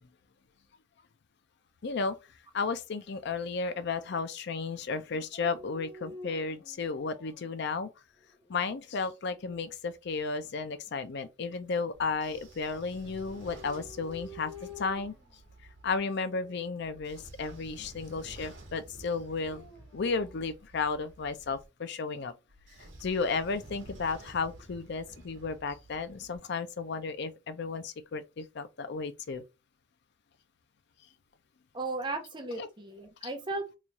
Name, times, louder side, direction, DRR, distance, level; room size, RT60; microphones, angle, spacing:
voice 1, 1.8-2.2 2.5-7.9 8.5-15.1 15.8-22.3 22.8-29.4 32.6-32.7, left 4 dB, 55° left, 0.5 m, -33 dB
Dog, 5.3-7.5 8.2-8.9 13.0-15.3 16.1-16.6 19.2-20.4, left 2 dB, 15° left, 0.8 m, -49 dB
Train / Sliding door, 11.9-16.0 16.8-21.6 22.5-26.4, right 1 dB, 60° right, 1.1 m, -51 dB
voice 2, 31.7-33.8, right 2 dB, 25° right, 0.6 m, -36 dB
3.0 x 2.3 x 4.0 m
head